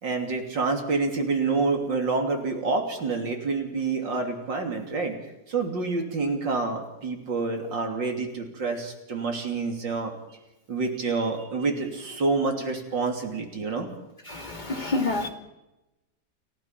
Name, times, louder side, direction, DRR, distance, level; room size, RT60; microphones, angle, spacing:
voice 1, 0.0-5.2 5.5-10.1 10.7-13.9, right 3 dB, 70° right, 3 dB, 3.7 m, -27 dB
voice 2, 14.3-15.3, left 2 dB, 25° left, 4 dB, 2.4 m, -28 dB
29.5 x 16.5 x 5.9 m, 0.97 s
omnidirectional pair, 2.1 m